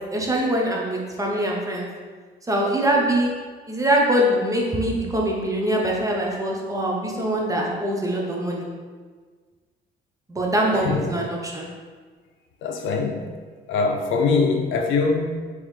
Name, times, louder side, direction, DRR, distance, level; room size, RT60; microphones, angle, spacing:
voice 1, 0.1-1.9 2.5-3.3 3.7-8.7 10.3-11.7, right 1 dB, 15° right, -2 dB, 0.8 m, -23 dB
voice 2, 12.6-13.3 13.7-15.4, left 4 dB, 85° left, 3 dB, 0.5 m, -22 dB
3.7 x 3.1 x 3.2 m, 1.5 s
cardioid pair, 90°, 20 cm